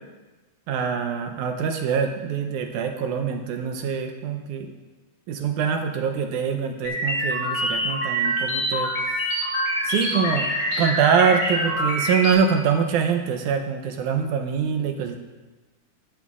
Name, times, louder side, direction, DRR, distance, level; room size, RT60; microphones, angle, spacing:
voice 1, 0.7-4.7 5.3-8.9 9.8-10.5 10.8-15.2, right 6 dB, 75° right, 5 dB, 1.9 m, -24 dB
sound 1, 6.8-12.3, equal, 40° left, 4.7 m, -25 dB
17.0 x 11.0 x 2.4 m, 1.2 s
omnidirectional pair, 4.0 m